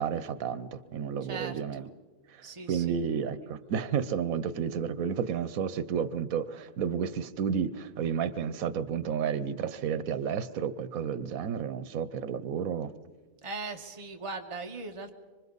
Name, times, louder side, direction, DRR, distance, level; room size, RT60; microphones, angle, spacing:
voice 1, 0.0-1.9 2.3-12.9, right 7 dB, 85° right, 14 dB, 1.2 m, -31 dB
voice 2, 1.3-1.9 2.4-2.9 13.4-15.1, right 3 dB, 25° right, 3 dB, 1.3 m, -39 dB
26.0 x 24.5 x 4.1 m, 1.4 s
omnidirectional pair, 1.4 m